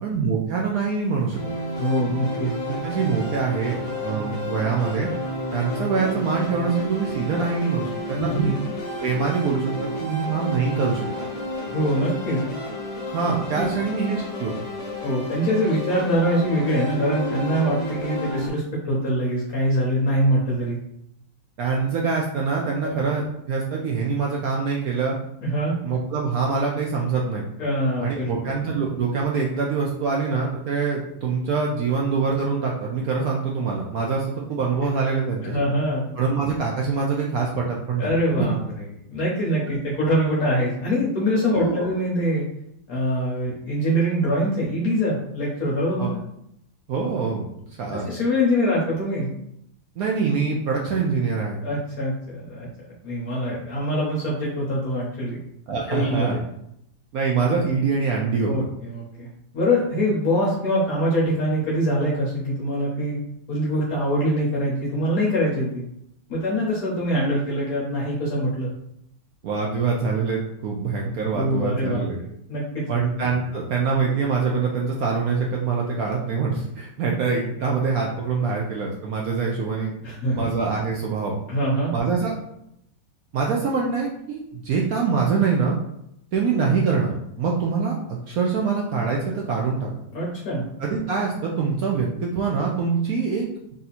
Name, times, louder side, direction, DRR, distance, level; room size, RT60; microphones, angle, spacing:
voice 1, 0.0-1.4 2.7-5.1 5.5-8.5 9.0-11.0 13.0-14.5 21.6-25.2 25.8-27.4 28.0-35.6 36.2-38.1 38.4-38.5 41.5-41.9 46.0-46.1 46.9-47.5 47.8-48.1 50.0-51.6 55.7-56.4 57.1-58.5 69.4-72.2 72.9-79.9 80.4-81.4 81.9-82.4 83.3-85.8 86.3-89.9 90.8-93.4, right 5 dB, 70° right, -1 dB, 0.9 m, -24 dB
sound 1, 1.3-18.5, left 1 dB, 40° left, 0.6 m, -31 dB
voice 2, 1.8-2.5 8.2-8.5 11.6-12.4 13.5-13.7 15.0-20.8 22.8-22.9 25.4-25.7 27.6-28.5 35.4-36.1 38.0-42.4 42.9-46.2 47.9-49.3 51.6-52.7 53.0-55.4 55.9-56.4 58.4-59.3 59.5-63.2 63.5-65.8 66.3-68.7 71.3-72.0 72.5-73.0 80.0-80.5 81.5-81.9 90.1-90.6, equal, 55° left, -5 dB, 1.2 m, -24 dB
3.6 x 2.8 x 4.1 m, 0.77 s
omnidirectional pair, 2.0 m